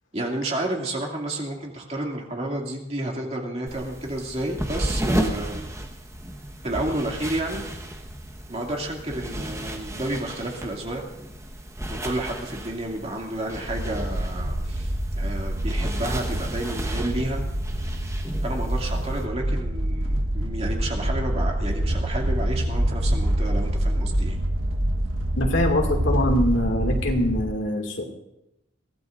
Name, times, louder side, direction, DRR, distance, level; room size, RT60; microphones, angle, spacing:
voice 1, 0.1-5.7 6.6-7.6 8.5-11.0 11.9-17.4 18.4-24.4, right 1 dB, 35° right, -1 dB, 2.5 m, -31 dB
sound 1, 3.7-19.3, right 1 dB, 15° right, 1.3 m, -33 dB
sound 2, 13.7-27.4, right 1 dB, 85° right, 1.4 m, -26 dB
voice 2, 25.4-28.0, left 1 dB, 70° left, 2 dB, 2.4 m, -23 dB
22.0 x 16.5 x 2.6 m, 0.89 s
head